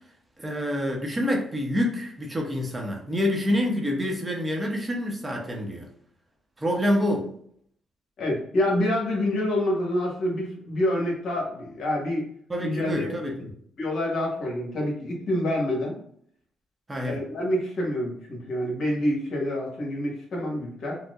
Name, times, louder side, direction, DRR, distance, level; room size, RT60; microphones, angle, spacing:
voice 1, 0.4-5.9 6.6-7.3 12.5-13.5 16.9-17.2, left 1 dB, 20° right, 0 dB, 0.7 m, -27 dB
voice 2, 8.2-12.2 12.6-13.1 13.8-15.9 17.1-21.0, left 1 dB, 60° left, -2 dB, 1.3 m, -27 dB
4.3 x 2.1 x 2.4 m, 0.65 s
cardioid pair, 90°, 0 cm